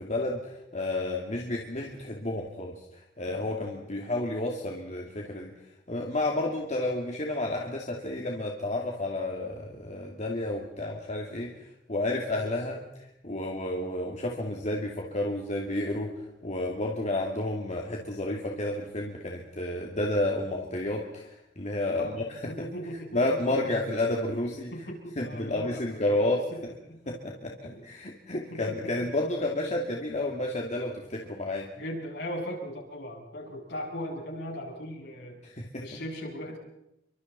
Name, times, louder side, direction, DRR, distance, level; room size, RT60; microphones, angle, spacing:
voice 1, 0.0-5.5 5.9-11.5 11.9-12.8 13.2-16.1 16.4-22.7 23.1-24.7 25.2-26.7 27.1-31.7 35.4-35.8, left 1 dB, 40° left, 0 dB, 2.4 m, -31 dB
voice 2, 22.5-23.5 24.7-26.4 26.9-27.2 27.6-27.8 28.3-28.9 31.8-35.4 35.8-36.6, equal, 65° left, -1 dB, 7.4 m, -38 dB
30.0 x 24.5 x 4.2 m, 0.85 s
head